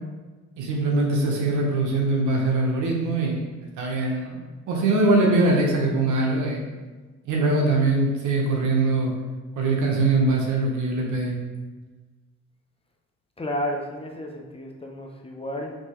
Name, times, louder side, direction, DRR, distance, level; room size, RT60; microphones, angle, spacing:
voice 1, 0.6-3.5 3.8-4.4 4.7-6.6 7.2-9.1 9.6-11.3, right 2 dB, 80° right, 0 dB, 1.0 m, -22 dB
voice 2, 13.4-15.7, equal, 20° left, 1 dB, 0.6 m, -32 dB
5.1 x 2.9 x 3.0 m, 1.3 s
cardioid pair, 90°, 30 cm